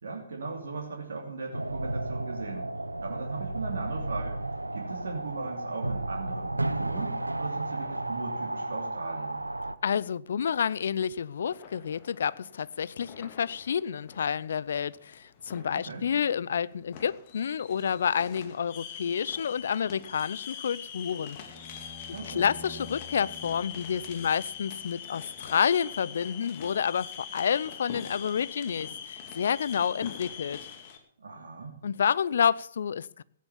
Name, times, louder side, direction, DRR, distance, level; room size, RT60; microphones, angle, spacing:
voice 1, 0.0-2.7 3.0-4.4 4.7-9.4 15.7-16.1 22.1-22.5 31.2-31.8, right 4 dB, 65° right, 2.9 m, -38 dB
sound 1, 1.5-9.8, right 2 dB, 90° right, 0.9 m, -33 dB
voice 2, 9.8-21.4 22.2-30.6 31.8-33.2, left 7 dB, 60° left, 0.6 m, -29 dB
sound 2, 11.4-31.0, left 8 dB, 40° left, 2.6 m, -44 dB
sound 3, 21.3-25.6, left 3 dB, 5° left, 6.5 m, -49 dB
17.0 x 10.0 x 7.1 m
figure-of-eight pair, 125°, 0 cm